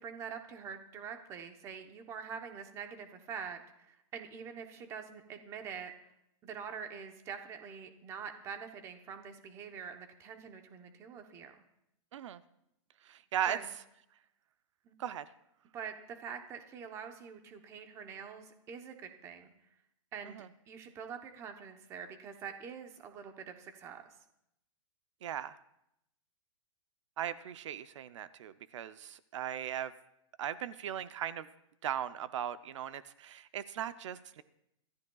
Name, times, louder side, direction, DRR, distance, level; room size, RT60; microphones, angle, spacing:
voice 1, 0.0-6.1 6.4-11.5 13.5-13.7 14.8-15.0 15.7-19.5 20.1-24.0, right 7 dB, 15° right, 6 dB, 0.9 m, -45 dB
voice 2, 13.0-13.6 15.0-15.3 20.3-20.5 25.2-25.6 27.2-29.9 30.4-31.5 31.8-34.4, right 10 dB, 65° right, 12 dB, 0.6 m, -38 dB
25.5 x 13.5 x 2.3 m, 0.81 s
supercardioid pair, 170°, 17 cm